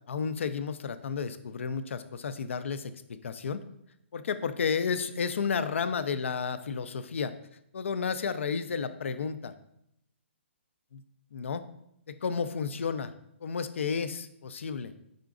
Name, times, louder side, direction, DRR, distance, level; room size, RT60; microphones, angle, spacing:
voice 1, 0.1-3.6 4.1-7.3 7.7-9.5 10.9-11.0 11.3-11.6 12.1-13.1 13.4-14.9, left 6 dB, 75° left, 12 dB, 0.4 m, -32 dB
4.9 x 3.8 x 2.4 m, 0.77 s
hypercardioid pair, 145°, 7 cm